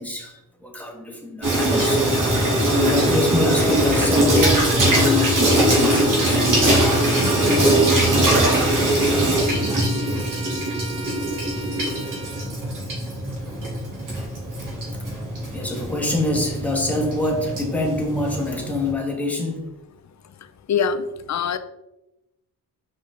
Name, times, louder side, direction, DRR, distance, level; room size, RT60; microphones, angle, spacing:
voice 1, 0.0-6.4 15.5-19.7, left 2 dB, 5° left, -1 dB, 1.7 m, -26 dB
Water tap faucet / Sink (filling or washing), 1.4-18.9, right 1 dB, 55° right, 2.4 m, -21 dB
Bowed string instrument, 7.1-12.5, right 2 dB, 30° right, 1.8 m, -37 dB
voice 2, 20.7-21.0 21.3-21.6, left 7 dB, 45° left, 11 dB, 0.6 m, -22 dB
5.4 x 5.2 x 3.8 m, 0.93 s
cardioid pair, 95°, 39 cm